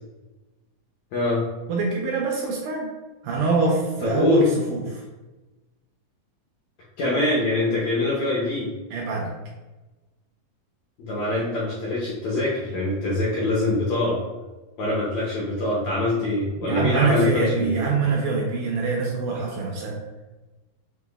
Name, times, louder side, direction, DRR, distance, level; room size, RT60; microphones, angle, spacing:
voice 1, 1.1-1.4 4.0-4.5 7.0-8.7 11.0-14.2 14.8-17.8, left 2 dB, 75° left, -6 dB, 1.7 m, -24 dB
voice 2, 1.7-2.9 3.2-5.0 8.9-9.3 16.6-20.0, right 4 dB, 80° right, -1 dB, 1.9 m, -24 dB
6.1 x 2.9 x 2.4 m, 1.1 s
omnidirectional pair, 4.0 m